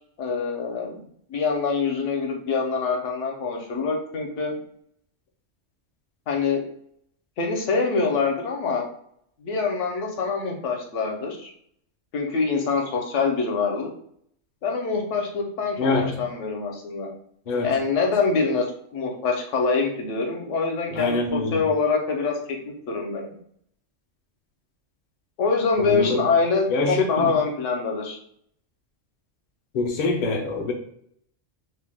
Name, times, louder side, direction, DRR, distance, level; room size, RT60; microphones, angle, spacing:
voice 1, 0.2-1.0 1.3-4.6 6.3-6.6 7.4-8.9 9.4-11.5 12.1-13.9 14.6-17.1 17.6-18.6 18.9-22.6 22.9-23.4 25.4-28.2, left 4 dB, 75° left, 1 dB, 0.9 m, -25 dB
voice 2, 15.8-16.2 17.5-17.7 20.9-21.6 25.8-26.2 26.7-27.3 29.7-30.7, left 3 dB, 55° left, 2 dB, 0.5 m, -24 dB
2.8 x 2.0 x 3.2 m, 0.65 s
omnidirectional pair, 1.3 m